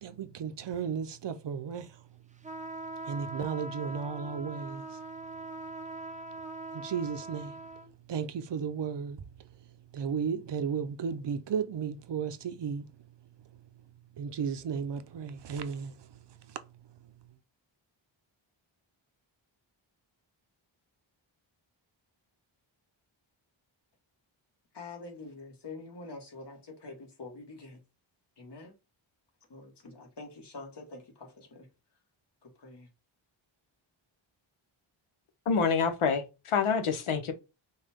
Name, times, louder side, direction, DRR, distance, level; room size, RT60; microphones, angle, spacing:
voice 1, 0.0-1.9 3.1-4.8 6.7-7.5 8.1-9.2 9.9-12.8 14.2-15.9 16.5-16.6, right 6 dB, 60° right, 0.6 m, -34 dB
sound 1, 2.4-7.9, right 2 dB, 15° right, 0.5 m, -42 dB
voice 2, 24.7-27.8 28.4-28.7 29.5-31.7 32.4-32.9, left 3 dB, 55° left, 1.6 m, -46 dB
voice 3, 35.5-37.3, left 6 dB, 85° left, 1.0 m, -27 dB
5.5 x 2.3 x 3.5 m
wide cardioid pair, 115°, 49 cm